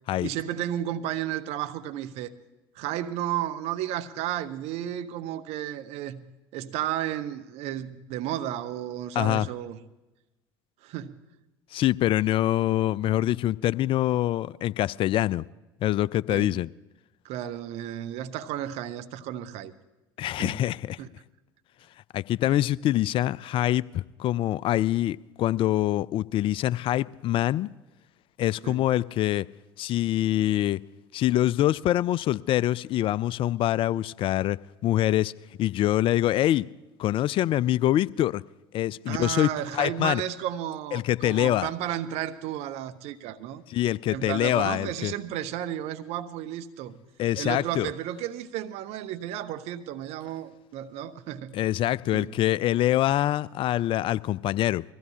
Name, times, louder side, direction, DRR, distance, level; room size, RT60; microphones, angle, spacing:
voice 1, 0.2-2.3 2.7-6.2 6.5-9.8 10.8-11.3 16.3-16.6 17.2-19.7 20.4-20.6 21.0-21.1 28.6-28.8 39.1-43.6 44.1-47.0 47.4-51.6 52.1-52.4, right 11 dB, 60° right, 0.8 m, -33 dB
voice 2, 9.2-9.5 11.7-15.4 15.8-16.7 20.2-21.0 22.1-27.7 28.4-29.5 29.8-30.8 31.1-35.3 35.6-36.7 37.0-38.4 38.7-40.2 40.9-41.7 43.7-45.1 47.2-47.9 51.5-54.8, left 13 dB, 50° left, 0.4 m, -25 dB
22.5 x 15.5 x 2.8 m
hypercardioid pair, 65°, 12 cm